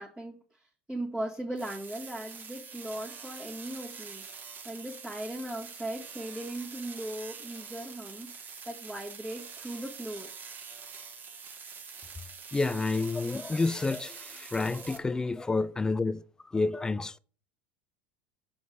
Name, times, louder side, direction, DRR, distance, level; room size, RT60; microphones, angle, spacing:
voice 1, 0.0-4.3 4.6-10.3, right 1 dB, 10° right, 1.8 m, -38 dB
sound 1, 1.6-15.0, right 5 dB, 35° right, 1.5 m, -45 dB
voice 2, 12.5-16.2 16.5-17.2, left 3 dB, 15° left, 0.4 m, -29 dB
6.2 x 4.8 x 5.3 m
hypercardioid pair, 75°, 5 cm